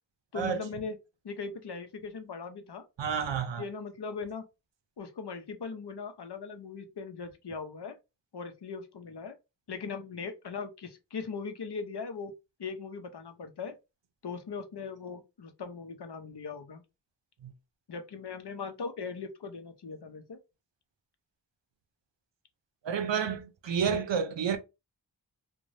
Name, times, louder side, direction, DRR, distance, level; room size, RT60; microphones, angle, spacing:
voice 1, 0.3-1.0 1.2-2.8 3.6-4.5 5.0-8.0 8.3-9.3 9.7-12.3 12.6-13.8 14.2-16.8 17.9-20.4, left 5 dB, 65° left, 0.7 m, -39 dB
voice 2, 3.0-3.6 17.4-17.5 22.8-24.6, right 6 dB, 85° right, 0.6 m, -30 dB
2.6 x 2.2 x 3.1 m
wide cardioid pair, 40°, 43 cm